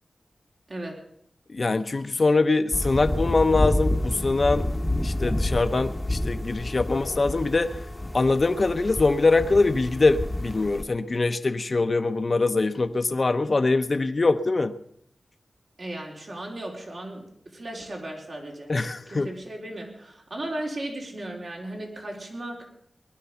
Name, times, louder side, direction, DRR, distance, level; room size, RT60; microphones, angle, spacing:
voice 1, 0.7-1.0 15.8-18.8 19.1-22.7, right 1 dB, 65° right, -1 dB, 4.3 m, -36 dB
voice 2, 1.5-4.7 5.0-7.8 8.1-14.7 18.7-19.3, left 3 dB, 50° left, 9 dB, 0.8 m, -23 dB
sound 1, 2.7-10.8, left 1 dB, 20° left, 1.0 m, -29 dB
19.5 x 11.5 x 5.7 m, 0.69 s
wide cardioid pair, 65°, 0 cm